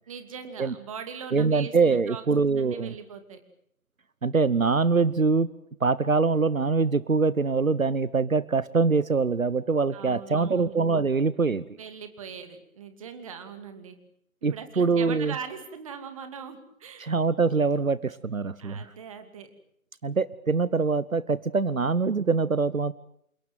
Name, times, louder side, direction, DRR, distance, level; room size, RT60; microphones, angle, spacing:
voice 1, 0.1-1.7 2.1-3.4 9.9-10.8 11.8-13.9 14.4-17.2 18.6-19.5, right 6 dB, 25° right, 8 dB, 2.6 m, -41 dB
voice 2, 1.3-2.9 4.2-5.5 5.8-11.6 14.4-15.3 17.0-18.9 20.0-22.9, right 4 dB, 70° right, 18 dB, 1.1 m, -24 dB
29.0 x 17.5 x 9.2 m, 0.71 s
figure-of-eight pair, 150°, 42 cm